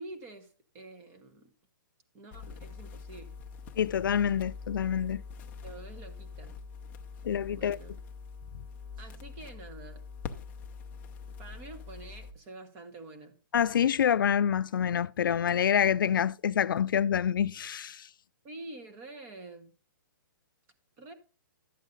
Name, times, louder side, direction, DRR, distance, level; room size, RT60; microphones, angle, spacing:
voice 1, 0.0-1.5 2.1-3.4 5.6-6.6 7.5-8.0 9.0-10.0 11.4-13.4 18.4-19.7 21.0-21.1, right 2 dB, 20° right, 1.1 m, -47 dB
sound 1, 2.3-12.3, left 5 dB, 15° left, 0.6 m, -44 dB
voice 2, 3.8-5.2 7.2-7.8 13.5-18.1, left 8 dB, 80° left, 0.4 m, -27 dB
12.0 x 8.2 x 3.9 m
hypercardioid pair, 170°, 11 cm